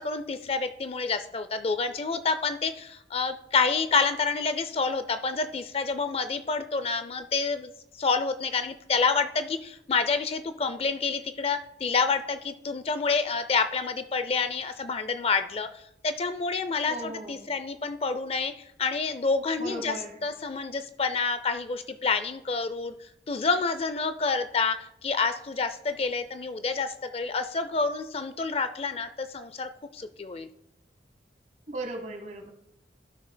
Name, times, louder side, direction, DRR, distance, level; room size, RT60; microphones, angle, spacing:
voice 1, 0.0-7.7 8.0-18.5 18.8-30.5, left 4 dB, 30° left, 0.4 m, -28 dB
voice 2, 16.9-17.5 19.6-20.2 31.7-32.5, right 2 dB, 40° right, 1.2 m, -37 dB
15.0 x 6.4 x 2.2 m
head